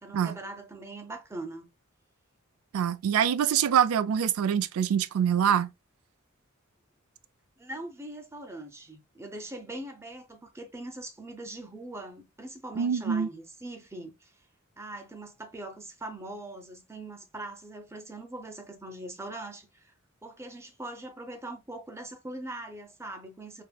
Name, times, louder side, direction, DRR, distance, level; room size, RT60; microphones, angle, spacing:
voice 1, 0.0-1.7 7.6-14.3 14.8-19.9 20.2-23.6, right 2 dB, 10° right, 0.5 m, -41 dB
voice 2, 2.7-5.7 12.8-13.3, right 8 dB, 70° right, 0.3 m, -25 dB
3.5 x 2.0 x 2.2 m
head